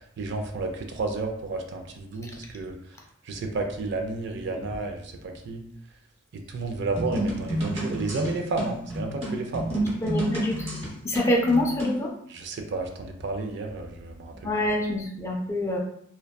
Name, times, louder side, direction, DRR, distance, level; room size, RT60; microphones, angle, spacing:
voice 1, 0.2-2.7 3.3-5.7 6.3-9.7 12.3-14.5, right 3 dB, 60° right, 4 dB, 0.3 m, -31 dB
sound 1, 7.0-12.0, right 1 dB, 30° right, 0.8 m, -30 dB
voice 2, 10.0-10.7 11.0-12.1 14.4-15.8, left 1 dB, 15° left, -1 dB, 0.3 m, -25 dB
2.6 x 2.2 x 2.2 m, 0.70 s
head